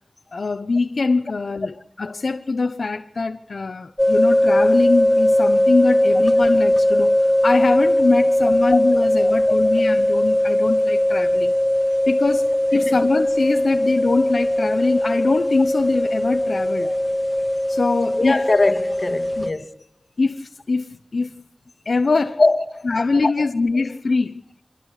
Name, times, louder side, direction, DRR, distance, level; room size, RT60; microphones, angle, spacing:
voice 1, 0.3-11.5 12.1-17.0 17.7-18.4 19.4-19.5 20.2-21.3 21.8-22.4 22.8-24.4, left 3 dB, 85° left, 0.8 m, -23 dB
sound 1, 4.0-19.5, left 1 dB, 10° left, 2.1 m, -19 dB
voice 2, 18.2-19.7 22.4-22.9 23.2-23.3, left 2 dB, 55° left, 1.7 m, -21 dB
28.5 x 25.0 x 4.9 m
wide cardioid pair, 60°, 0 cm